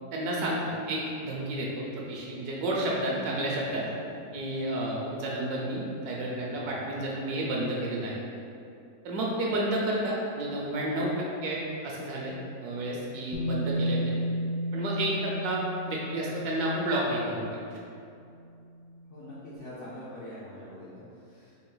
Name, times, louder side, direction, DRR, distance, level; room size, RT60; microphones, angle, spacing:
voice 1, 0.1-3.8 4.3-8.2 9.0-11.1 11.4-12.3 12.6-14.2 14.7-17.8, right 1 dB, 70° right, -3 dB, 1.0 m, -31 dB
voice 2, 6.5-7.5 19.1-21.6, left 1 dB, 65° left, -9 dB, 0.7 m, -45 dB
Bass guitar, 13.3-17.3 18.4-18.5, equal, 80° left, 1.2 m, -32 dB
3.8 x 2.4 x 3.8 m, 2.5 s
omnidirectional pair, 1.8 m